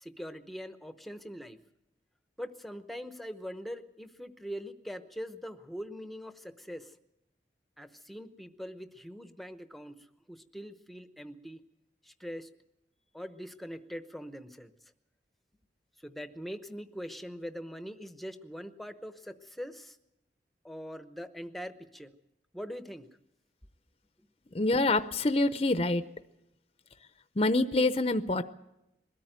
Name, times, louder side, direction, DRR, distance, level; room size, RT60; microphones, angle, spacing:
voice 1, 0.0-1.6 2.4-6.9 7.8-10.0 10.3-11.6 12.0-12.5 13.1-14.7 16.0-20.0 20.6-22.1 22.5-23.1, equal, ahead, 9 dB, 0.9 m, -42 dB
voice 2, 24.5-26.0 27.4-28.4, left 2 dB, 30° left, 11 dB, 0.7 m, -26 dB
21.5 x 13.5 x 9.0 m, 0.87 s
head